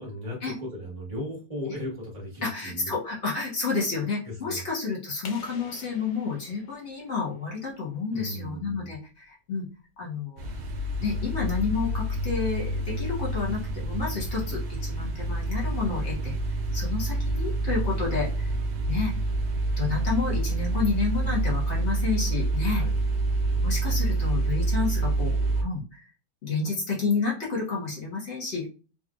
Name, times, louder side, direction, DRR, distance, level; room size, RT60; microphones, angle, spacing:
voice 1, 0.0-2.9 4.2-4.6 8.1-8.9 22.7-22.9, left 1 dB, 20° right, -3 dB, 1.6 m, -36 dB
voice 2, 2.4-9.7 10.0-10.5 11.0-16.3 16.7-18.5 18.9-19.1 19.8-22.8 23.6-26.1 26.4-28.7, left 4 dB, 40° left, -4 dB, 1.4 m, -30 dB
sound 1, 5.2-7.9, left 5 dB, 65° left, 1.0 m, -48 dB
sound 2, 10.4-25.6, right 2 dB, 75° right, 0.6 m, -27 dB
3.4 x 3.3 x 2.5 m, 0.34 s
omnidirectional pair, 2.1 m